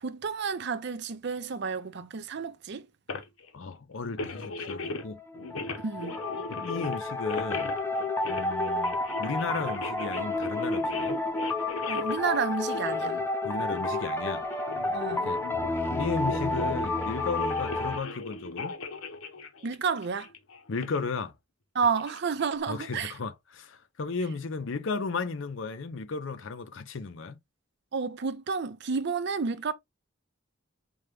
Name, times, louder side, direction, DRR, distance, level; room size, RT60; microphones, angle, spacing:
voice 1, 0.0-2.9 5.8-6.2 11.9-13.2 14.9-15.3 19.6-20.3 21.7-23.1 27.9-29.7, right 5 dB, 55° right, 0.5 m, -30 dB
sound 1, 3.1-3.5 4.2-5.1 5.3-14.0 14.5-21.0 21.8-22.5, left 3 dB, 90° left, 0.8 m, -39 dB
voice 2, 3.5-5.2 6.5-7.7 8.2-11.2 13.4-14.4 15.2-15.4 15.9-18.7 20.7-21.3 22.7-27.4, left 4 dB, 65° left, 0.6 m, -34 dB
sound 2, 5.0-18.0, left 2 dB, 10° left, 0.6 m, -31 dB
5.3 x 2.2 x 3.1 m
head